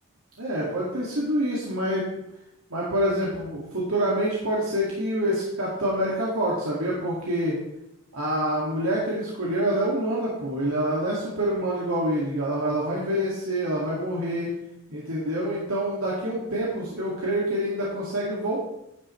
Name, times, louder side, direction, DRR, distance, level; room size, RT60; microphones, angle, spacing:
voice 1, 0.4-2.2 2.7-7.6 8.1-14.5 14.9-18.6, right 1 dB, 80° right, -5 dB, 2.1 m, -26 dB
11.0 x 8.7 x 3.2 m, 0.83 s
head